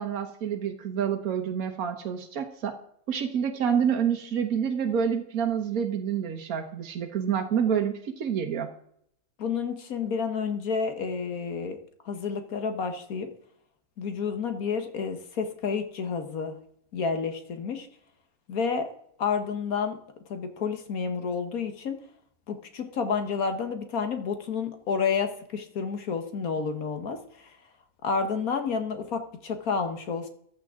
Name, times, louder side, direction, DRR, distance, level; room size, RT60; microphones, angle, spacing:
voice 1, 0.0-2.7 3.1-8.7, right 8 dB, 75° right, 5 dB, 1.6 m, -28 dB
voice 2, 9.4-11.8 12.0-13.3 14.0-16.6 16.9-17.9 18.5-18.9 19.2-20.0 20.3-22.0 22.5-27.5 28.0-30.3, left 5 dB, 80° left, 7 dB, 1.6 m, -30 dB
15.0 x 11.5 x 3.7 m, 0.68 s
omnidirectional pair, 1.5 m